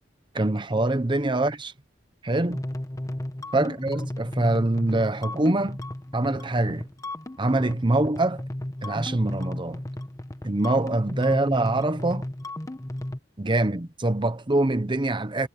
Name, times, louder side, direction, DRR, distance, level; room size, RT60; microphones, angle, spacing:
voice 1, 0.3-1.7 2.2-2.6 3.5-5.8 6.1-6.9 7.4-8.4 8.8-9.8 10.4-12.2 13.4-15.5, right 2 dB, 25° right, 0.8 m, -24 dB
sound 1, 2.5-13.2, left 1 dB, 20° left, 1.3 m, -35 dB
head